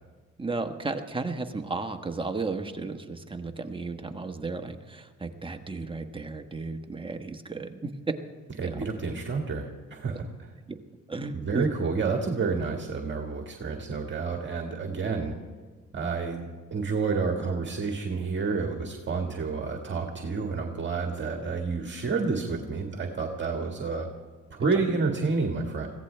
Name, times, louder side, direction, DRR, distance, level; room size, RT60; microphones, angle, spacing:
voice 1, 0.4-7.9 8.6-8.8 10.7-10.8 11.1-11.7, right 3 dB, 15° right, 5 dB, 1.3 m, -34 dB
voice 2, 8.6-10.5 11.3-15.3 15.9-16.4 16.7-24.1 24.5-25.9, right 4 dB, 40° right, 2 dB, 1.9 m, -29 dB
23.0 x 16.5 x 3.4 m, 1.4 s
cardioid pair, 90°, 30 cm